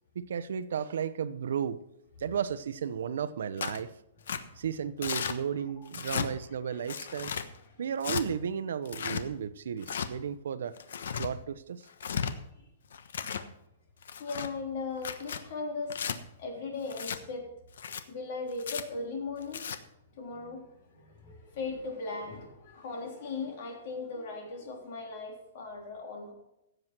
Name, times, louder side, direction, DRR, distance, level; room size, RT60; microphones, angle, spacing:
voice 1, 0.1-1.8 2.2-3.9 4.6-7.3 7.8-10.8 11.2-11.9, right 7 dB, 70° right, 13 dB, 0.8 m, -34 dB
Tearing, 3.6-3.8 4.3-4.4 5.0-5.4 5.9-6.3 6.9-7.5 8.0-8.2 8.8-9.2 9.8-10.1 10.8-11.3 11.9-12.3 12.9-13.5 14.0-14.5 15.0-15.4 15.9-16.2 16.9-17.2 17.7-18.0 18.6-18.8 19.4-19.8, left 7 dB, 75° left, 1.2 m, -34 dB
voice 2, 14.2-16.0 16.4-17.5 18.1-19.6 20.1-26.3, left 3 dB, 40° left, 1 dB, 3.4 m, -38 dB
16.0 x 8.0 x 4.5 m, 0.85 s
hypercardioid pair, 175°, 0 cm